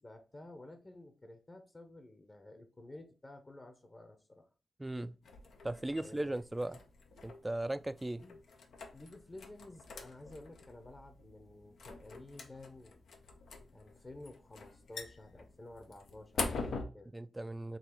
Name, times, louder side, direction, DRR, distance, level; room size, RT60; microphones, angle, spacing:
voice 1, 0.0-4.5 6.0-6.4 8.1-8.4 8.9-13.0 13.7-17.1, left 2 dB, 30° left, 0.8 m, -52 dB
voice 2, 4.8-5.2 5.6-6.8 7.2-8.3 17.1-17.8, right 1 dB, 15° right, 0.3 m, -37 dB
sound 1, 5.2-16.8, left 4 dB, 85° left, 0.8 m, -45 dB
4.0 x 2.9 x 4.4 m
cardioid pair, 80°, 0 cm